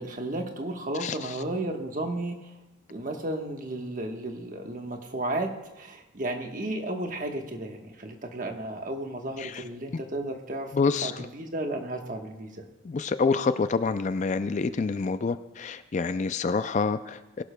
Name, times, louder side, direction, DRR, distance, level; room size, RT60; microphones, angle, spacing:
voice 1, 0.0-2.4 2.9-5.5 5.8-10.7 11.0-12.5, right 1 dB, 40° right, 3 dB, 1.2 m, -33 dB
voice 2, 10.7-11.1 12.8-17.4, left 4 dB, 35° left, 12 dB, 0.3 m, -27 dB
21.5 x 12.0 x 2.2 m, 1.0 s
head